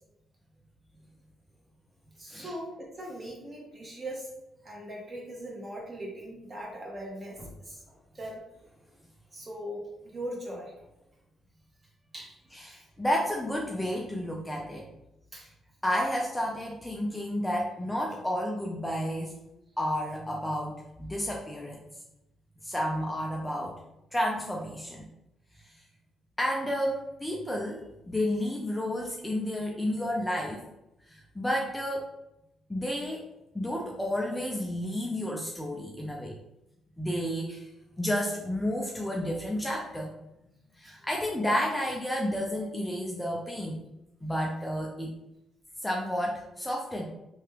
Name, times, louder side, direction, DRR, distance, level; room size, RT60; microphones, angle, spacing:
voice 1, 2.2-4.3 4.6-8.4 9.3-10.7 12.1-12.5 15.3-15.5 40.8-41.0, right 1 dB, 30° right, -2 dB, 1.1 m, -40 dB
voice 2, 12.5-14.9 15.8-19.3 19.8-21.8 22.6-23.8 24.1-25.1 25.6-25.7 26.4-30.6 31.1-32.1 32.7-33.2 33.5-36.4 37.0-37.7 38.0-40.1 40.8-43.8 44.2-45.1 45.8-47.0, equal, 10° left, -1 dB, 0.4 m, -31 dB
2.9 x 2.3 x 3.2 m, 0.89 s
cardioid pair, 90°, 0 cm